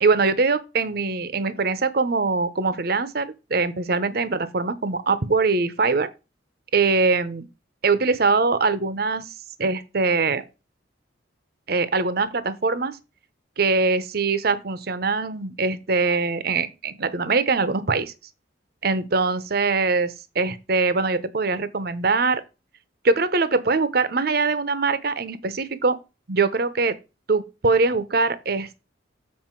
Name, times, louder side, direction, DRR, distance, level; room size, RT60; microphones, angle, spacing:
voice 1, 0.0-6.1 6.7-7.5 7.8-9.3 9.6-10.4 11.7-13.0 13.6-18.1 18.8-22.4 23.0-26.0 26.3-27.0 27.3-28.8, right 4 dB, 55° right, 0.8 m, -22 dB
7.5 x 4.6 x 4.5 m
head